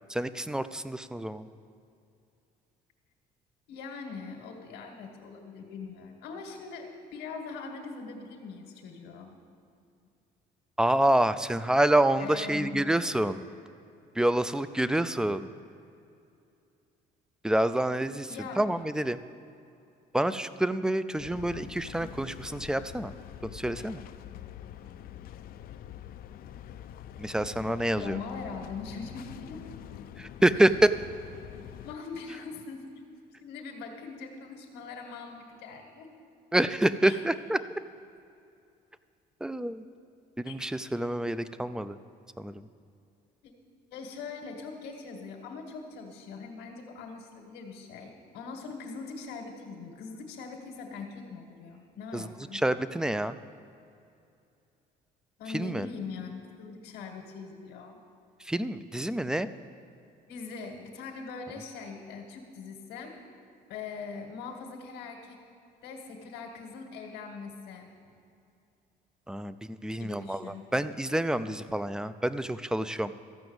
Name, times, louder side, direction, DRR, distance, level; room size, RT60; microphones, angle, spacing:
voice 1, 0.1-1.5 10.8-13.5 14.2-15.4 17.4-18.3 18.6-19.2 20.1-23.1 23.4-24.0 27.2-28.2 30.2-30.9 36.5-37.6 39.4-39.8 40.4-42.0 42.4-42.7 52.1-53.4 55.5-55.9 58.4-59.5 69.3-73.1, right 1 dB, 5° right, 13 dB, 0.4 m, -27 dB
voice 2, 3.7-9.3 12.2-12.8 18.3-18.6 21.9-22.1 28.0-29.6 30.5-30.7 31.8-32.8 33.4-36.1 37.0-37.2 40.4-40.5 43.4-43.5 43.9-52.6 55.4-58.0 60.3-63.2 63.7-65.4 65.8-67.9 70.0-70.7, left 4 dB, 90° left, 1 dB, 1.5 m, -41 dB
sound 1, 21.2-31.9, left 10 dB, 60° left, 0.5 m, -45 dB
14.0 x 5.9 x 7.9 m, 2.6 s
cardioid pair, 110°, 17 cm